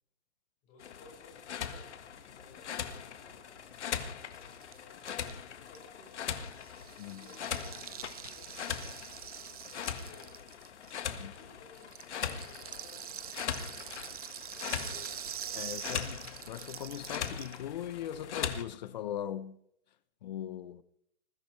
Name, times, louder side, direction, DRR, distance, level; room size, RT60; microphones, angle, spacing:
voice 1, 0.6-1.9 2.2-3.6 4.5-5.1 5.6-6.4 6.7-10.4 11.2-14.2 14.5-16.2, left 3 dB, 25° left, 5.5 m, -58 dB
sound 1, 0.8-18.6, left 8 dB, 75° left, 1.7 m, -40 dB
Rattle (instrument), 3.7-3.8 4.0-4.1 4.3-11.4 11.7-17.6, right 10 dB, 35° right, 0.5 m, -44 dB
voice 2, 15.5-16.2 16.5-19.6 20.2-20.8, left 10 dB, 40° left, 0.8 m, -39 dB
20.5 x 15.0 x 3.3 m
hypercardioid pair, 175°, 34 cm